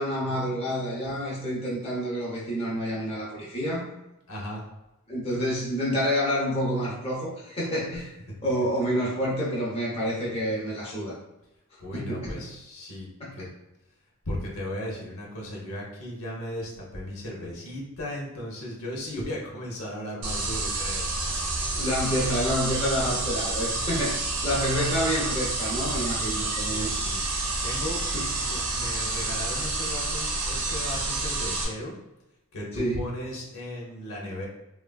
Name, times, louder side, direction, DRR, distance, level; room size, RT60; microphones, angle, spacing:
voice 1, 0.0-3.9 5.1-8.1 8.4-11.2 11.9-12.4 13.2-13.4 21.7-26.9 28.1-28.3 32.7-33.1, equal, 25° left, -6 dB, 0.6 m, -28 dB
voice 2, 4.3-4.6 11.8-13.1 13.4-13.5 14.3-21.1 26.7-27.2 27.6-28.0 28.4-31.9 32.5-34.5, left 1 dB, 70° left, -2 dB, 0.8 m, -36 dB
sound 1, 20.2-31.7, right 2 dB, 90° right, 0.6 m, -29 dB
3.2 x 2.3 x 2.2 m, 0.93 s
head